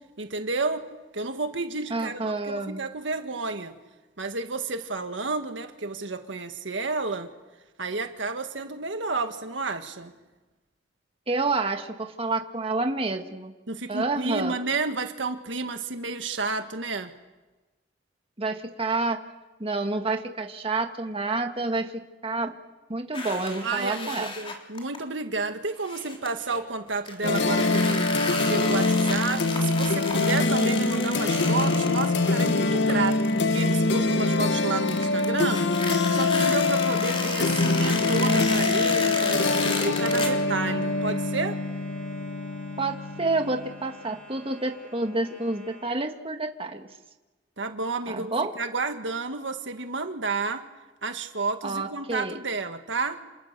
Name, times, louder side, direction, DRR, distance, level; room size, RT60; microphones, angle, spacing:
voice 1, 0.2-0.9 1.1-3.7 4.2-7.3 7.8-10.1 13.7-17.1 23.6-28.1 28.5-35.6 36.1-41.6 47.6-50.6 51.0-53.2, right 3 dB, 90° right, 7 dB, 1.7 m, -31 dB
voice 2, 1.9-2.8 11.3-13.5 13.9-14.6 18.4-19.2 19.6-22.5 22.9-24.3 42.8-46.9 48.1-48.5 51.6-52.4, right 3 dB, 30° right, 4 dB, 1.9 m, -29 dB
sound 1, 23.1-25.0 25.8-26.6 27.1-34.6 34.9-40.3, left 3 dB, 30° left, 3.8 m, -33 dB
sound 2, 27.2-43.8, left 3 dB, 70° left, 1.0 m, -24 dB
sound 3, 39.5-46.0, equal, 5° left, 6.1 m, -47 dB
28.5 x 28.0 x 6.8 m, 1.2 s
head